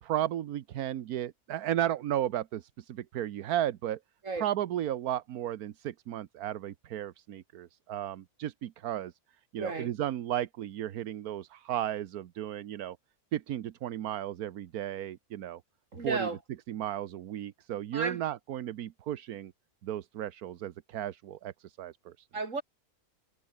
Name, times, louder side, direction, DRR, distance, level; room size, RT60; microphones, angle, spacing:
voice 1, 0.0-4.0 4.4-9.1 9.5-13.0 13.3-15.6 16.0-16.3 16.7-19.5 19.8-22.1, right 12 dB, 80° right, 1.3 m, -34 dB
voice 2, 9.6-9.9 15.9-16.4 17.9-18.2 22.3-22.6, right 3 dB, 60° right, 3.5 m, -33 dB
omnidirectional pair, 1.6 m